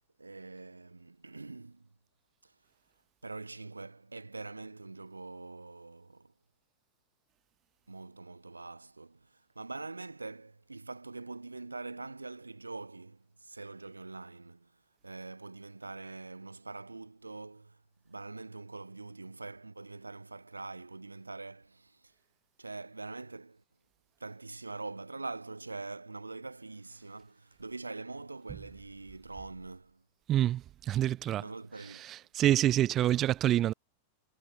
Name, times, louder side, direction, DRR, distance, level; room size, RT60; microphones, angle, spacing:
voice 1, 0.2-1.9 2.4-2.5 3.2-6.3 7.9-22.1 22.6-23.6 24.2-30.0 31.4-32.0, right 3 dB, 80° right, 6.4 m, -44 dB
voice 2, 30.3-30.6 30.9-31.4 32.1-33.7, right 12 dB, 30° right, 3.9 m, -26 dB
figure-of-eight pair, 90°, 0 cm